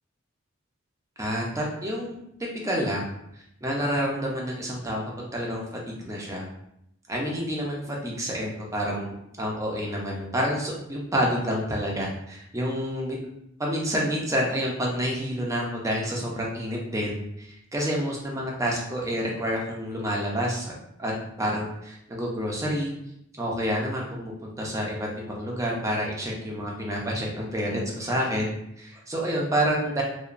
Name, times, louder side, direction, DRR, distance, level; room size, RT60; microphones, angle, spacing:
voice 1, 1.2-3.1 3.3-5.0 5.3-6.5 7.1-13.2 13.6-20.7 21.0-21.1 21.4-22.9 23.4-28.5 28.8-30.0, equal, 15° right, -2 dB, 0.4 m, -28 dB
2.9 x 2.1 x 2.4 m, 0.78 s
head